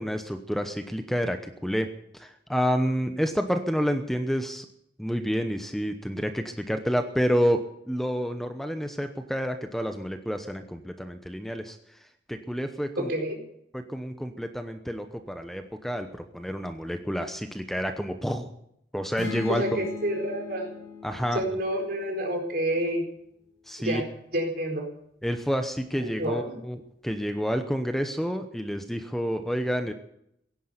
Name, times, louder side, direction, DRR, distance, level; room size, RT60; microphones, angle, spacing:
voice 1, 0.0-1.9 2.1-4.7 5.0-7.6 7.9-11.8 12.3-13.1 13.7-18.5 18.9-19.6 21.0-21.4 23.7-24.0 25.2-29.9, equal, ahead, 6 dB, 0.9 m, -29 dB
voice 2, 13.0-13.4 19.5-20.7 21.3-23.0 23.8-24.1 24.3-24.8 26.0-26.6, right 1 dB, 60° right, 2 dB, 4.6 m, -28 dB
sound 1, 19.2-22.9, left 5 dB, 75° left, 7.8 m, -39 dB
16.5 x 10.0 x 8.0 m, 0.74 s
head